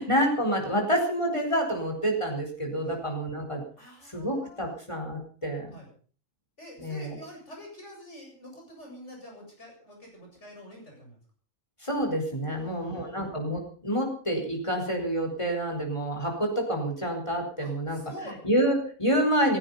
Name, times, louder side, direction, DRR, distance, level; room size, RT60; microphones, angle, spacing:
voice 1, 0.0-3.6 4.0-5.8 6.8-7.2 11.8-18.0 18.4-19.6, equal, 20° left, 3 dB, 4.7 m, -28 dB
voice 2, 3.8-4.7 5.7-5.9 6.6-11.2 12.4-13.3 17.6-18.4, equal, 60° left, 0 dB, 8.1 m, -46 dB
16.0 x 16.0 x 5.6 m, 0.43 s
omnidirectional pair, 1.4 m